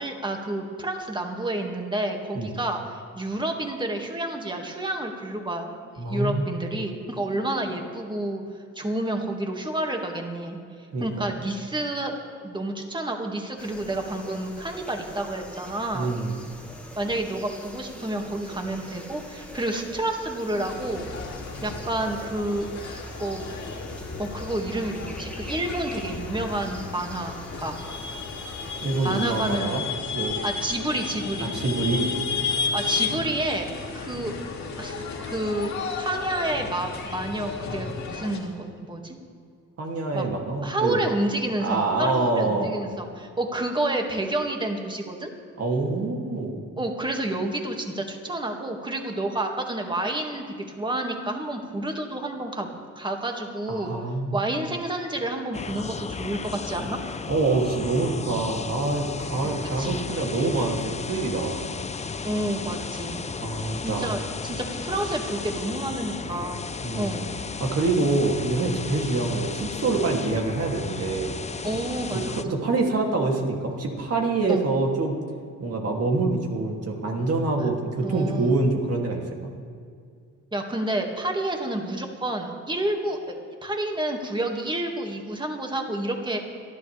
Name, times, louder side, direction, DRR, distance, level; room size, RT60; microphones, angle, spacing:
voice 1, 0.0-8.4 8.8-10.6 11.0-12.1 12.4-16.2 17.0-21.1 21.6-22.7 23.2-23.4 24.2-27.8 29.0-29.8 30.4-31.5 32.7-33.7 33.9-34.3 34.8-39.2 40.1-40.2 40.6-45.3 46.8-53.9 54.3-57.0 59.4-59.5 59.8-60.0 62.2-63.2 63.8-66.7 67.0-67.3 71.6-72.4 74.5-74.6 78.0-78.6 80.5-83.4 83.6-86.4, right 1 dB, 15° right, 2 dB, 2.1 m, -29 dB
voice 2, 6.0-6.5 10.9-11.0 15.9-16.4 28.8-29.8 30.1-30.4 31.5-32.1 39.8-41.0 41.6-42.7 45.6-46.7 53.8-54.4 57.3-61.6 63.4-64.1 66.8-67.1 67.6-71.3 72.1-75.2 75.6-79.5, right 3 dB, 50° right, 0 dB, 2.8 m, -26 dB
sound 1, 13.6-29.6, left 1 dB, 5° left, 2.0 m, -43 dB
sound 2, 20.7-38.4, left 4 dB, 65° left, 2.9 m, -33 dB
sound 3, 55.5-72.4, left 5 dB, 25° left, 0.6 m, -34 dB
27.0 x 11.5 x 3.5 m, 2.3 s
cardioid pair, 90°, 30 cm